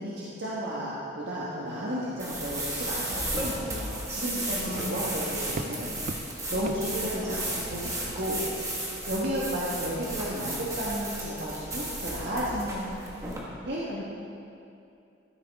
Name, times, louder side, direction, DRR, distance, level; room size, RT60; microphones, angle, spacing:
voice 1, 0.0-8.4 9.0-13.0 13.6-13.9, equal, 60° right, -8 dB, 1.4 m, -33 dB
sound 1, 2.2-13.4, right 1 dB, 15° right, 1.5 m, -34 dB
sound 2, 3.6-8.3 9.1-9.7 10.3-10.4, right 3 dB, 40° right, 0.4 m, -42 dB
voice 2, 4.6-5.4 6.6-6.8 13.9-14.0, left 1 dB, 80° left, -1 dB, 1.6 m, -40 dB
13.0 x 8.4 x 3.6 m, 2.6 s
head